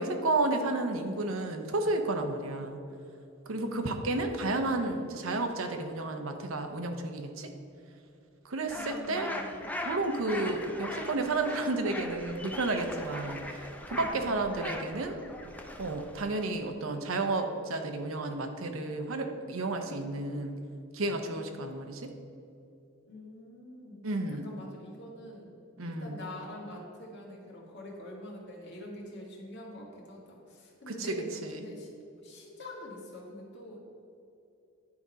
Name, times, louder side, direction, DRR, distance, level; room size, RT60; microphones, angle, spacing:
voice 1, 0.0-2.8 3.5-7.5 8.4-9.3 9.8-15.2 15.8-20.6 20.9-22.1 24.0-24.6 25.8-26.2 30.9-31.1 31.4-31.6, right 2 dB, 80° right, 5 dB, 0.8 m, -32 dB
voice 2, 3.4-4.8 8.7-9.7 13.9-14.4 23.1-24.0 24.4-25.5 25.9-31.9 32.2-33.8, left 1 dB, 55° left, -2 dB, 1.7 m, -45 dB
sound 1, 8.7-16.7, left 1 dB, 5° left, 0.5 m, -40 dB
9.8 x 4.0 x 5.0 m, 2.7 s
head